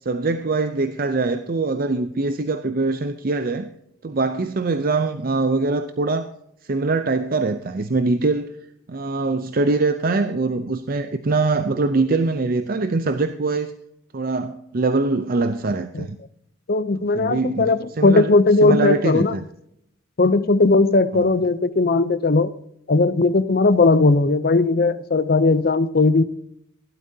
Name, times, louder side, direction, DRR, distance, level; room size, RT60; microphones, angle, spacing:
voice 1, 0.0-3.7 4.0-6.3 6.6-8.5 8.9-13.7 14.1-16.2 17.0-19.4 21.1-21.3, right 3 dB, 45° right, 9 dB, 0.5 m, -23 dB
voice 2, 16.7-19.3 20.2-22.5 22.9-26.2, left 3 dB, 50° left, 15 dB, 0.6 m, -18 dB
15.5 x 12.0 x 2.8 m, 0.76 s
head